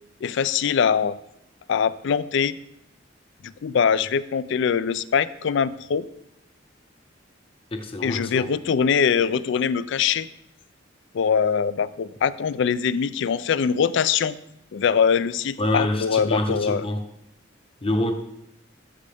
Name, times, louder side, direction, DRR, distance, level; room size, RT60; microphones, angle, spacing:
voice 1, 0.2-1.1 1.7-2.5 3.4-6.0 8.0-10.3 11.1-14.4 14.7-16.8, left 6 dB, 65° left, 0.4 m, -22 dB
voice 2, 7.7-8.5 15.6-17.1 17.8-18.1, left 1 dB, 30° left, 0.8 m, -26 dB
13.5 x 6.4 x 3.5 m
head